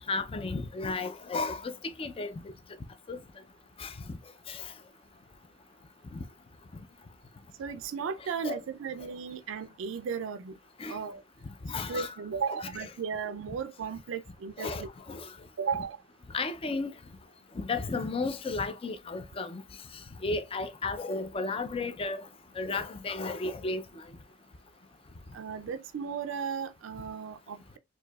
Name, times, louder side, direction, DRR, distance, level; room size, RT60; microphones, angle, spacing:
voice 1, 0.1-1.7 2.0-2.3 3.1-3.2 3.8-4.2 4.5-4.6 6.1-6.2 8.4-8.6 10.8-11.0 11.6-12.1 12.6-12.7 14.6-15.3 16.3-16.9 17.6-19.6 20.2-22.2 22.6-23.8, left 3 dB, 30° left, 0.4 m, -33 dB
voice 2, 7.6-10.5 10.9-11.2 11.9-14.9 15.6-16.0 25.3-27.8, right 6 dB, 70° right, 0.4 m, -35 dB
4.6 x 2.7 x 2.2 m
head